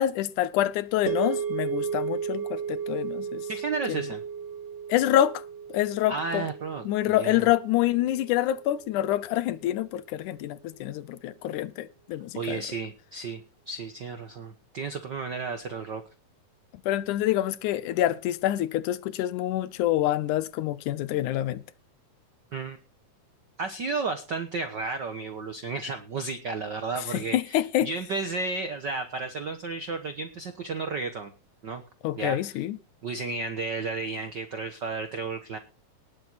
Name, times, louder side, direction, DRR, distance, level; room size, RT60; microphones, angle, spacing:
voice 1, 0.0-3.5 3.9-4.0 4.9-5.4 5.7-6.4 6.9-12.6 16.9-21.6 27.1-27.9 32.0-32.8, left 13 dB, 80° left, 2.2 m, -26 dB
sound 1, 1.1-9.4, right 7 dB, 85° right, 3.5 m, -34 dB
voice 2, 3.5-4.2 6.1-7.5 12.3-16.0 22.5-22.8 23.6-31.3 31.6-31.8 32.2-32.6 33.0-35.6, right 4 dB, 70° right, 1.0 m, -33 dB
19.0 x 7.7 x 4.1 m
omnidirectional pair, 3.6 m